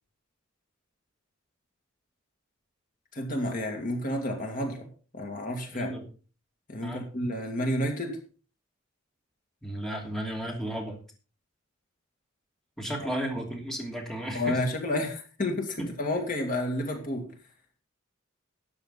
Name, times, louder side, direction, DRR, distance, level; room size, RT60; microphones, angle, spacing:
voice 1, 3.1-4.9 5.1-5.9 6.7-8.2 14.3-17.3, left 1 dB, 40° left, 3 dB, 2.4 m, -30 dB
voice 2, 5.7-6.0 6.8-7.1 9.6-11.0 12.8-14.6 15.8-15.9, right 1 dB, ahead, 0 dB, 2.8 m, -34 dB
13.0 x 9.9 x 4.1 m, 0.38 s
head